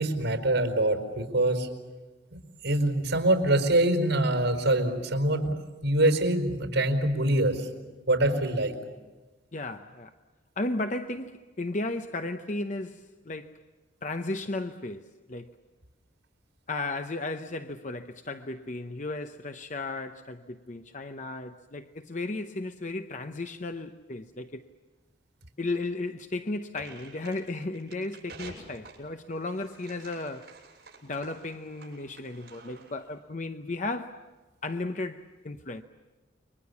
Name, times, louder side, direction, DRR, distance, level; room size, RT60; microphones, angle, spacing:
voice 1, 0.0-1.7 2.6-5.5 5.8-7.7 8.1-8.7, right 1 dB, 85° right, 4.7 m, -24 dB
voice 2, 9.5-10.1 10.6-13.6 14.0-15.6 16.7-24.6 25.6-30.5 31.0-34.3 34.6-35.8, left 2 dB, 40° left, 0.8 m, -35 dB
sound 1, 26.7-33.1, right 3 dB, 60° right, 7.5 m, -50 dB
29.5 x 24.0 x 7.1 m
head